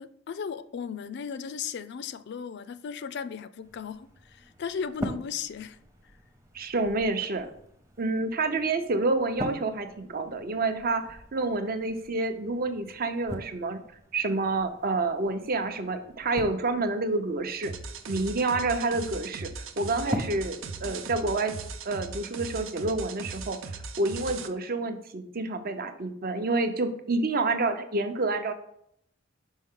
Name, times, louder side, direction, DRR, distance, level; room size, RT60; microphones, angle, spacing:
voice 1, 0.0-5.8, left 6 dB, 60° left, 0.4 m, -36 dB
sound 1, 3.6-21.6, equal, 15° right, 0.8 m, -43 dB
voice 2, 6.5-7.5 8.0-13.8 14.1-17.7 18.1-21.5 21.8-28.5, right 3 dB, 50° right, 0.7 m, -28 dB
sound 2, 17.6-24.5, right 4 dB, 90° right, 0.6 m, -39 dB
5.5 x 5.4 x 3.7 m
head